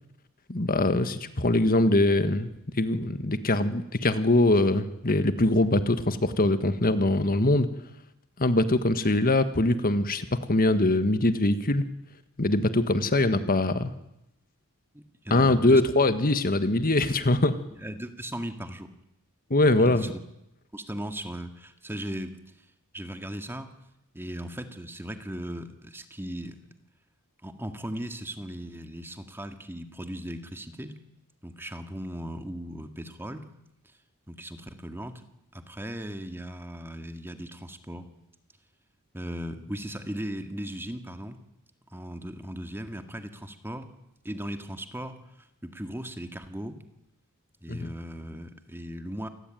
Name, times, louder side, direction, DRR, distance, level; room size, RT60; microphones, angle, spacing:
voice 1, 0.5-2.5 2.7-7.7 8.4-11.8 12.4-13.9 15.3-17.6 19.5-20.1 47.7-47.9, left 2 dB, 40° left, 10 dB, 1.6 m, -23 dB
voice 2, 14.9-15.8 17.8-18.9 19.9-20.2 20.7-22.4 22.9-23.7 24.1-26.6 27.4-31.0 31.4-33.5 34.3-35.2 35.5-38.1 39.1-41.4 41.9-43.9 44.2-45.2 45.6-46.8 47.6-49.3, equal, 10° right, 7 dB, 2.0 m, -37 dB
28.0 x 20.0 x 9.2 m, 0.84 s
head